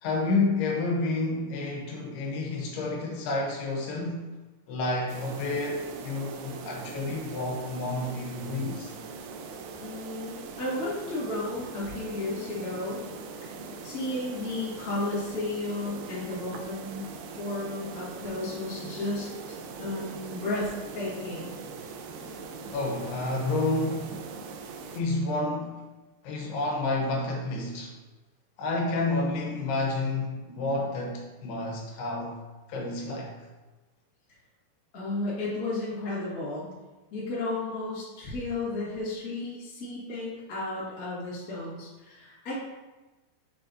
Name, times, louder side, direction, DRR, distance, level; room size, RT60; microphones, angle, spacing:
voice 1, 0.0-4.3 4.7-8.9 22.7-24.3 24.9-25.8 26.2-28.0 28.6-32.4 32.7-33.3, left 2 dB, 85° left, 3.1 m, -30 dB
sound 1, 5.1-25.0, right 4 dB, 90° right, 2.6 m, -41 dB
voice 2, 9.8-13.0 13.4-13.5 13.8-17.0 17.4-19.3 19.8-21.5 34.9-36.7 37.1-42.6, left 2 dB, 30° left, 1.6 m, -33 dB
6.6 x 6.4 x 2.7 m
omnidirectional pair, 4.5 m